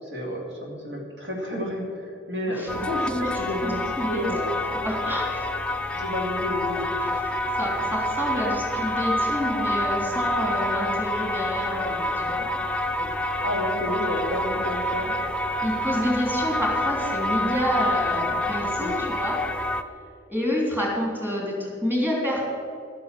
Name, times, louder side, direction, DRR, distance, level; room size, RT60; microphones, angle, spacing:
voice 1, 0.0-3.8 4.1-4.5 5.9-6.9 13.0-13.1 13.4-15.1 18.6-19.2, left 1 dB, 75° right, 0 dB, 2.8 m, -31 dB
sound 1, 2.7-19.8, left 1 dB, 5° left, 0.5 m, -27 dB
voice 2, 3.6-4.3 4.7-5.5 7.0-12.5 15.6-19.4 20.3-22.4, equal, 10° right, -2 dB, 3.2 m, -28 dB
12.5 x 9.3 x 7.5 m, 2.5 s
head